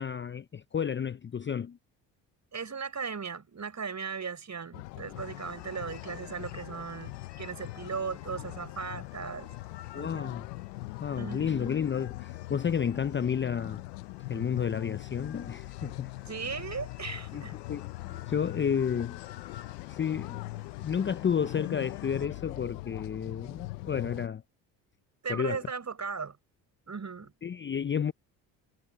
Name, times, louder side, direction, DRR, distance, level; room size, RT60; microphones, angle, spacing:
voice 1, 0.0-1.8 9.9-10.5 11.0-13.8 14.3-16.1 17.3-17.4 17.7-19.2 19.9-20.4 20.8-24.4 25.3-25.6 27.4-28.1, left 7 dB, 25° left, 0.6 m, -31 dB
voice 2, 2.5-9.5 9.9-10.4 11.1-11.8 16.3-17.6 25.2-26.4 26.9-27.3, right 5 dB, 35° right, 5.8 m, -37 dB
sound 1, 4.7-24.3, left 20 dB, 90° left, 1.0 m, -41 dB
sound 2, 5.1-22.3, left 10 dB, 60° left, 6.7 m, -54 dB
hypercardioid pair, 60°, 47 cm